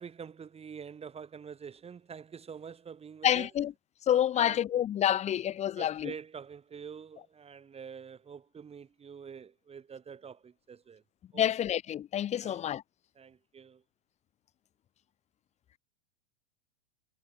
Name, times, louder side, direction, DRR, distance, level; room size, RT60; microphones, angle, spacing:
voice 1, 0.0-3.5 4.4-4.6 5.8-11.0 11.3-11.7 12.4-12.6 13.1-13.8, right 6 dB, 15° right, 3.2 m, -46 dB
voice 2, 3.2-3.7 4.1-6.1 11.3-12.8, left 11 dB, 20° left, 0.9 m, -28 dB
hypercardioid pair, 110°, 35 cm